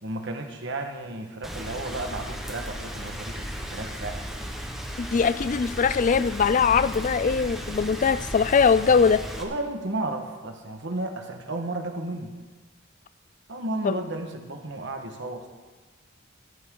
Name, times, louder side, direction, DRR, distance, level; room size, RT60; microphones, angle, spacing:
voice 1, 0.0-4.2 9.4-12.3 13.5-15.5, right 2 dB, 55° right, 4 dB, 1.5 m, -33 dB
Rain, 1.4-9.4, equal, ahead, 1.2 m, -35 dB
voice 2, 5.0-9.2 13.8-14.0, left 6 dB, 35° left, 15 dB, 0.3 m, -21 dB
16.0 x 13.5 x 3.9 m, 1.3 s
head